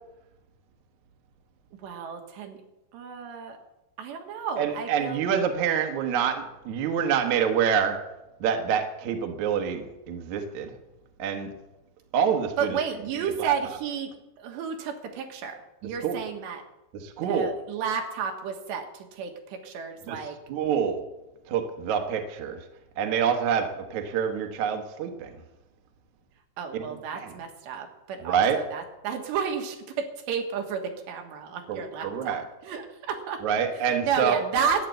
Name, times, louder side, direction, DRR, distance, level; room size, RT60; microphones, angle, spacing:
voice 1, 1.8-2.6 2.9-3.6 4.0-5.2 12.6-16.6 17.2-20.4 26.6-33.4 33.7-34.9, right 6 dB, 75° right, 4 dB, 3.6 m, -32 dB
voice 2, 4.6-8.0 8.4-10.7 11.2-11.5 12.1-12.8 13.4-13.5 16.0-16.2 16.9-17.5 20.1-20.2 20.5-21.0 21.5-22.6 23.0-25.3 26.7-26.8 27.1-27.3 28.2-28.6 31.7-32.4 33.4-34.4, right 7 dB, 60° right, 5 dB, 2.1 m, -26 dB
13.5 x 9.9 x 7.9 m, 0.97 s
omnidirectional pair, 5.1 m